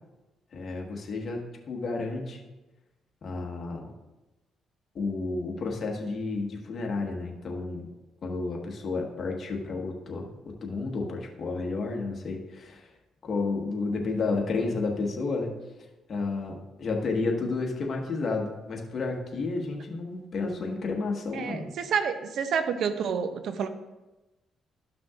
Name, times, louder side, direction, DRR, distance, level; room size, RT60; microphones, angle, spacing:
voice 1, 0.5-2.4 3.2-3.9 4.9-7.9 8.2-12.9 13.2-15.5 16.1-21.7, left 3 dB, 50° left, 1 dB, 1.5 m, -31 dB
voice 2, 21.3-23.7, right 6 dB, 70° right, 10 dB, 0.7 m, -29 dB
13.0 x 5.8 x 2.5 m, 1.1 s
cardioid pair, 90°, 0 cm